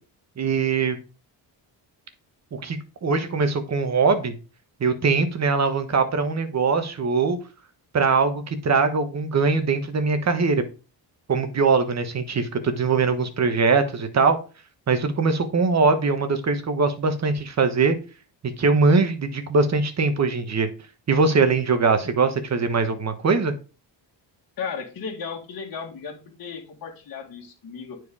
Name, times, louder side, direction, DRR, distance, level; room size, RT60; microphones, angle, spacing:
voice 1, 0.4-1.0 2.5-4.3 4.8-7.4 7.9-10.6 11.3-14.4 14.9-18.0 18.6-20.7 21.1-23.5, right 4 dB, 35° right, 9 dB, 1.3 m, -21 dB
voice 2, 24.6-28.0, left 6 dB, 50° left, -2 dB, 2.2 m, -35 dB
9.5 x 4.7 x 4.8 m, 0.34 s
cardioid pair, 140°, 44 cm